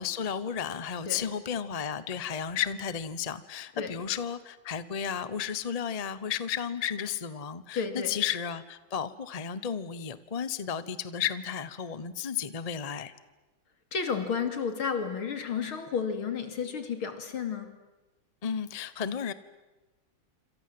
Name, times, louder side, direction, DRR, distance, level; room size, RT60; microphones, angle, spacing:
voice 1, 0.0-13.1 18.4-19.3, left 8 dB, 30° left, 15 dB, 0.7 m, -33 dB
voice 2, 7.7-8.2 13.9-17.8, left 6 dB, 80° left, 8 dB, 3.5 m, -32 dB
27.5 x 27.0 x 7.8 m, 1.1 s
omnidirectional pair, 2.3 m